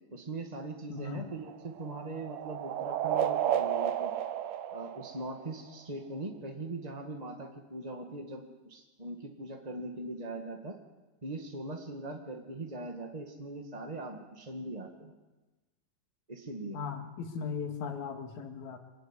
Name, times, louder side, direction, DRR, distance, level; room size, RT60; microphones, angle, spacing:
voice 1, 0.1-4.1 4.7-10.8 11.2-15.1 16.3-16.8, right 2 dB, 25° right, 2 dB, 0.9 m, -41 dB
voice 2, 0.9-1.3 16.7-18.8, left 6 dB, 60° left, 4 dB, 3.3 m, -38 dB
sound 1, 1.0-5.7, right 10 dB, 65° right, 1.8 m, -33 dB
25.5 x 15.5 x 9.9 m, 1.1 s
omnidirectional pair, 4.0 m